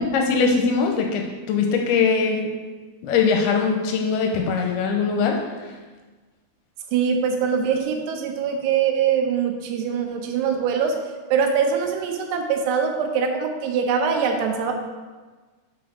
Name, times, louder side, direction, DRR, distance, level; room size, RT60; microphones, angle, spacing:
voice 1, 0.0-2.5 3.0-5.7, left 5 dB, 80° left, 2 dB, 2.5 m, -21 dB
voice 2, 6.9-11.0 11.3-14.7, right 6 dB, 80° right, 4 dB, 2.8 m, -23 dB
6.1 x 5.8 x 4.9 m, 1.3 s
omnidirectional pair, 4.7 m